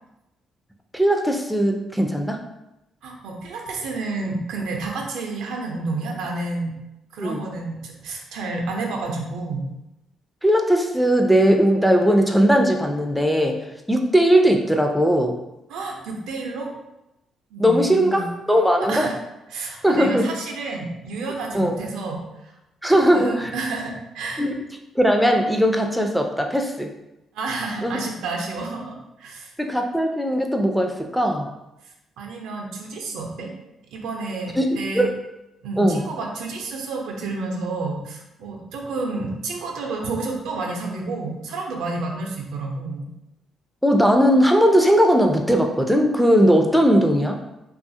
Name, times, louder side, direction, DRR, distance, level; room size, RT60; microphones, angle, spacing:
voice 1, 0.9-2.4 7.2-7.4 10.4-15.4 17.6-19.1 19.8-20.3 21.5-21.7 22.8-23.5 24.4-24.6 25.0-26.9 27.8-28.0 29.6-31.5 34.6-34.7 34.9-35.1 35.8-36.0 43.8-47.4, equal, ahead, 3 dB, 0.3 m, -19 dB
voice 2, 3.0-6.7 7.1-9.7 15.7-16.7 17.5-18.2 18.9-19.2 19.5-22.5 22.9-24.5 27.3-29.5 32.2-33.5 33.9-35.1 35.6-43.1, right 3 dB, 90° right, 1 dB, 0.5 m, -30 dB
2.7 x 2.3 x 2.6 m, 0.93 s
cardioid pair, 90°, 0 cm